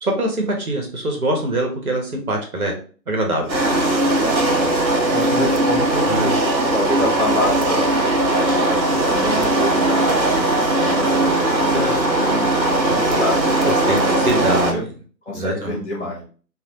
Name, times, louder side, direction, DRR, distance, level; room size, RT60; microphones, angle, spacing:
voice 1, 0.0-2.7 3.1-3.4 6.1-6.3 12.9-13.0 13.6-14.0 14.3-14.8 15.3-15.7, right 1 dB, 55° right, 1 dB, 1.2 m, -23 dB
voice 2, 3.4-3.7 4.4-4.7 5.1-6.4 6.7-7.9 8.5-14.8 15.2-16.2, left 1 dB, 40° left, -4 dB, 1.6 m, -27 dB
sound 1, 3.5-14.7, right 1 dB, 90° right, 0.9 m, -19 dB
sound 2, 3.7-14.5, right 3 dB, 25° right, 1.0 m, -28 dB
3.2 x 2.8 x 2.6 m, 0.40 s
figure-of-eight pair, 150°, 50 cm